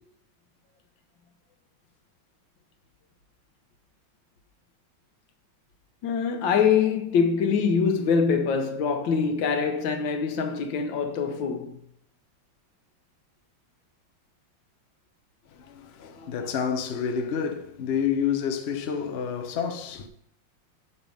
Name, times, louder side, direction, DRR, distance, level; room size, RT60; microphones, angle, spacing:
voice 1, 6.0-11.8, left 6 dB, 65° left, 1.5 m, -24 dB
voice 2, 15.5-20.1, left 7 dB, 80° left, 0.5 m, -29 dB
8.2 x 5.7 x 5.2 m
omnidirectional pair, 2.3 m